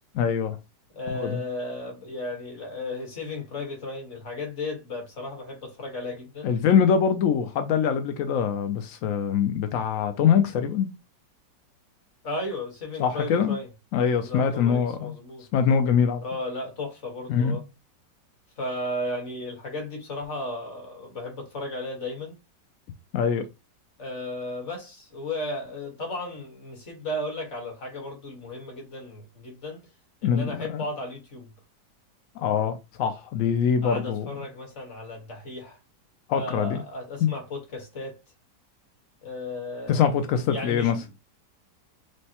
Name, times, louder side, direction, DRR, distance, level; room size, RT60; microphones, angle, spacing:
voice 1, 0.1-0.6 1.1-1.3 6.4-10.9 13.0-13.6 13.9-15.1 15.5-16.2 17.3-17.6 23.1-23.4 30.2-30.8 32.4-34.3 36.3-36.8 37.2-37.3 39.9-40.9, left 7 dB, 75° left, 0.7 m, -23 dB
voice 2, 0.9-6.5 12.2-13.7 14.1-15.5 16.2-17.6 18.6-22.4 24.0-29.8 30.2-31.5 33.8-35.8 36.3-38.2 39.2-40.1 40.5-40.9, left 2 dB, 40° left, 1.6 m, -35 dB
6.2 x 2.2 x 2.9 m
omnidirectional pair, 1.9 m